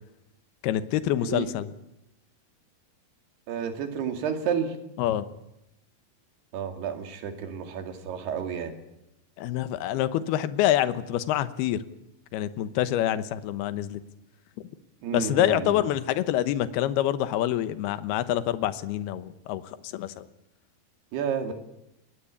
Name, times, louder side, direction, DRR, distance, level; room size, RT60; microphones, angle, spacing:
voice 1, 0.6-1.7 5.0-5.2 9.4-11.8 12.3-14.0 15.1-19.6 19.9-20.3, left 12 dB, 75° left, 13 dB, 2.9 m, -26 dB
voice 2, 3.5-4.8 6.5-8.7 15.0-15.8 21.1-21.5, right 7 dB, 70° right, 6 dB, 4.3 m, -31 dB
24.0 x 19.0 x 8.4 m, 0.86 s
omnidirectional pair, 4.8 m